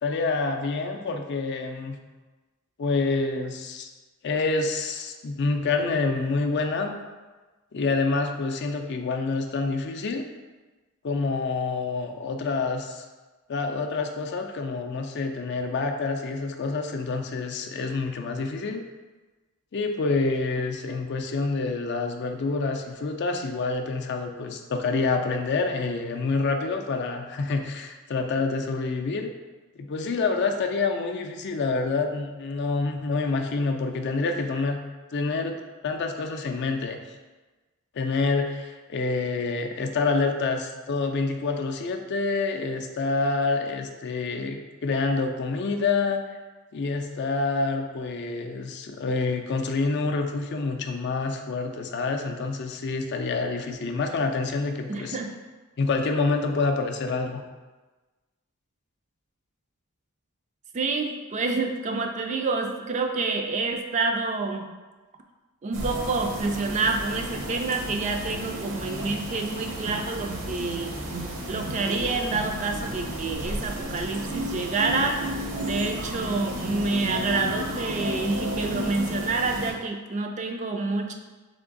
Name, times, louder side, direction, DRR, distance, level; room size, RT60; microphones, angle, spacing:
voice 1, 0.0-2.0 2.8-3.9 4.2-7.0 7.7-10.2 11.0-13.0 13.5-18.8 19.7-29.3 29.8-34.8 35.1-35.6 35.8-37.0 37.9-46.4 46.7-55.2 55.8-57.4, left 3 dB, 50° left, 4 dB, 0.4 m, -27 dB
voice 2, 54.9-55.3 60.7-64.7 65.6-71.0 71.5-75.2 75.6-81.1, right 3 dB, 35° right, 4 dB, 0.3 m, -28 dB
sound 1, 65.7-79.7, equal, 60° right, 0.7 m, -33 dB
3.5 x 3.3 x 3.8 m, 1.2 s
head